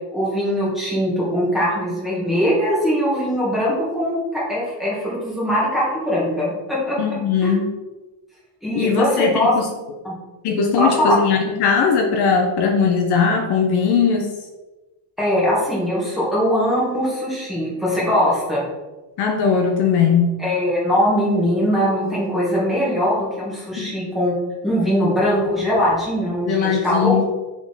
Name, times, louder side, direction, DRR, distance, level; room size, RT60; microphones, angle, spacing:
voice 1, 0.1-7.0 7.4-7.5 8.6-9.5 10.0-10.1 10.8-11.2 15.2-18.6 20.4-24.3 24.6-27.2, equal, ahead, -8 dB, 1.8 m, -21 dB
voice 2, 7.0-7.7 8.7-9.7 10.4-14.3 19.2-20.4 23.8-23.9 26.5-27.2, left 6 dB, 55° left, 2 dB, 0.8 m, -19 dB
6.3 x 3.9 x 3.8 m, 1.1 s
cardioid pair, 170°, 46 cm